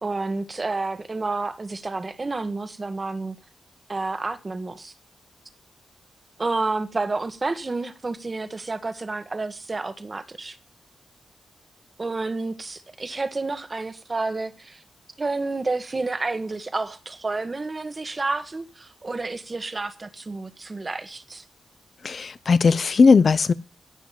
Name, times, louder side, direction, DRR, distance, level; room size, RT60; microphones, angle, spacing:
voice 1, 0.0-3.3 3.9-4.9 6.4-10.6 12.0-14.8 15.2-21.4, right 3 dB, 30° right, 1.6 m, -30 dB
voice 2, 22.0-23.5, left 4 dB, 50° left, 0.9 m, -17 dB
16.0 x 6.2 x 9.2 m
wide cardioid pair, 110°, 0 cm